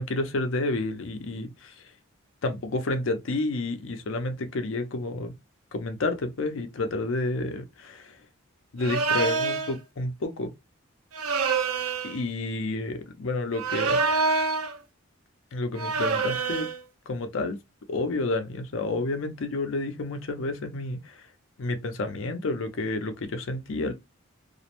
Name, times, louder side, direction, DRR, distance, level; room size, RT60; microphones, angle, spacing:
voice 1, 0.0-1.8 2.4-5.3 5.7-8.2 8.7-10.5 12.0-14.4 15.5-16.7 17.1-17.6 17.9-21.2 21.6-23.9, left 2 dB, 65° left, 0.5 m, -30 dB
sound 1, 8.8-9.7 11.1-12.2 13.5-14.8 15.8-16.8, right 4 dB, 85° right, 0.4 m, -26 dB
2.4 x 2.0 x 2.8 m
head